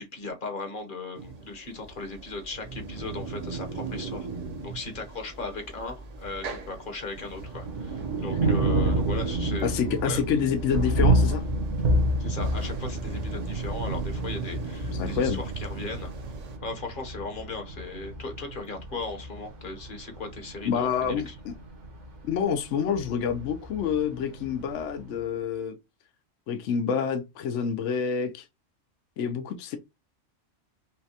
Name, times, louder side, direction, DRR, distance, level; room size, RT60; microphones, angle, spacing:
voice 1, 0.0-4.3 4.6-9.7 10.0-10.2 12.2-16.1 16.6-21.4, left 3 dB, 45° left, 1.0 m, -37 dB
sound 1, 1.2-16.6, right 5 dB, 45° right, 0.6 m, -37 dB
Thunder, 7.2-25.1, right 1 dB, 65° right, 1.4 m, -29 dB
voice 2, 9.6-11.4 14.9-15.4 20.7-21.5 22.3-25.8 26.5-28.4 29.2-29.8, left 7 dB, 70° left, 0.9 m, -28 dB
5.6 x 2.2 x 2.8 m
omnidirectional pair, 1.3 m